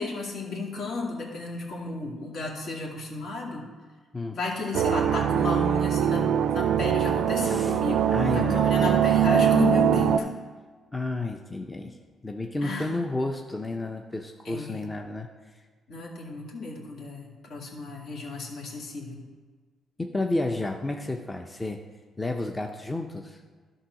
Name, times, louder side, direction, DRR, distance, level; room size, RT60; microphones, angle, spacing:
voice 1, 0.0-3.7 4.3-10.3 12.6-13.0 14.4-14.8 15.9-19.2, left 3 dB, 65° left, -2 dB, 2.1 m, -33 dB
sound 1, 4.7-10.2, right 9 dB, 75° right, 0.4 m, -22 dB
voice 2, 7.4-7.8 8.1-9.0 10.9-12.0 12.2-15.3 20.0-21.8 22.2-23.4, left 2 dB, 15° left, 3 dB, 0.6 m, -31 dB
11.5 x 3.9 x 6.2 m, 1.5 s
cardioid pair, 90°, 0 cm